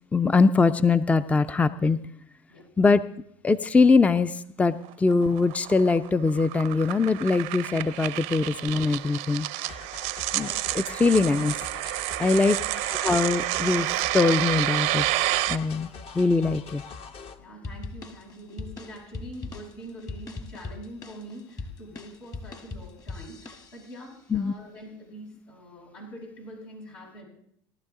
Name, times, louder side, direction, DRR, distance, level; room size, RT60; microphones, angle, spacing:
voice 1, 0.1-2.0 2.8-3.0 3.4-9.5 10.3-11.6 12.2-12.6 12.9-15.0 15.5-15.9 16.1-16.8 24.3-24.5, left 4 dB, 10° left, 14 dB, 0.4 m, -22 dB
sound 1, 4.8-15.6, right 17 dB, 70° right, 0.6 m, -29 dB
sound 2, 9.7-17.4, left 5 dB, 50° left, 1.1 m, -43 dB
voice 2, 17.4-27.2, right 1 dB, 85° left, -4 dB, 6.6 m, -44 dB
sound 3, 17.6-24.1, left 3 dB, 30° left, 1.3 m, -40 dB
18.0 x 12.0 x 3.7 m, 0.69 s
hypercardioid pair, 80°, 13 cm